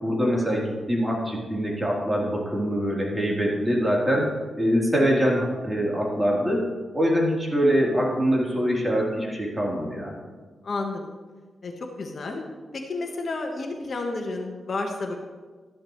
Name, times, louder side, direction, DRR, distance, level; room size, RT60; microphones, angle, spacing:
voice 1, 0.0-4.3 4.6-6.6 6.9-10.1, equal, 15° right, -4 dB, 3.7 m, -24 dB
voice 2, 10.6-11.0 11.6-12.4 12.7-15.1, left 3 dB, 55° left, 2 dB, 1.4 m, -31 dB
13.5 x 11.0 x 3.3 m, 1.4 s
cardioid pair, 70°, 0 cm